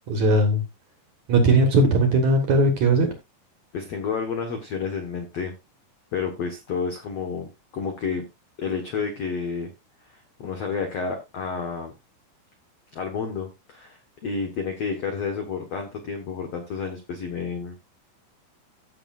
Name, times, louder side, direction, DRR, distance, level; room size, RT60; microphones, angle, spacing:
voice 1, 0.1-0.6 1.3-3.1, right 2 dB, 55° right, 5 dB, 2.3 m, -18 dB
voice 2, 3.7-5.5 6.1-8.3 8.6-9.7 10.0-11.9 12.9-17.7, left 5 dB, 70° left, 5 dB, 1.5 m, -30 dB
15.5 x 7.0 x 2.5 m, 0.22 s
omnidirectional pair, 5.0 m